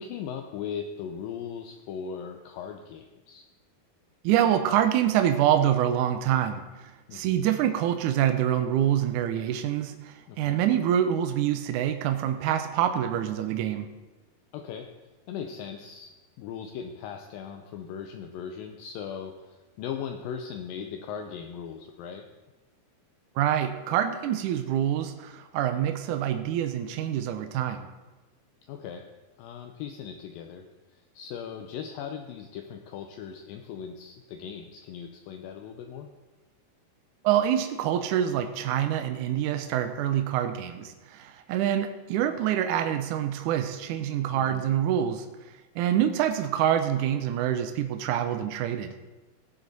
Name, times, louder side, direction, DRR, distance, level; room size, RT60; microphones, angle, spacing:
voice 1, 0.0-3.4 7.1-7.4 10.3-10.6 14.5-14.9 15.3-16.1 16.4-22.3 28.7-29.1 29.4-30.7 30.9-36.1 44.3-44.7, left 7 dB, 80° left, 4 dB, 2.3 m, -38 dB
voice 2, 4.2-13.9 23.4-27.9 37.2-45.3 45.8-48.9, right 10 dB, 80° right, 7 dB, 1.8 m, -26 dB
17.0 x 7.5 x 4.0 m, 1.1 s
omnidirectional pair, 4.3 m